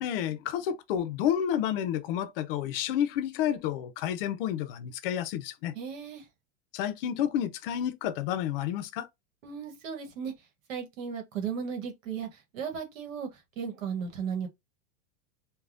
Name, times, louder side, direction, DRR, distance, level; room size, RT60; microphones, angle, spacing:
voice 1, 0.0-5.7 6.7-9.1, left 10 dB, 50° left, 0.5 m, -30 dB
voice 2, 5.7-6.2 9.4-10.3 10.7-12.3 12.5-13.3 13.6-14.5, right 7 dB, 90° right, 1.1 m, -35 dB
3.3 x 2.2 x 2.5 m
supercardioid pair, 155°, 38 cm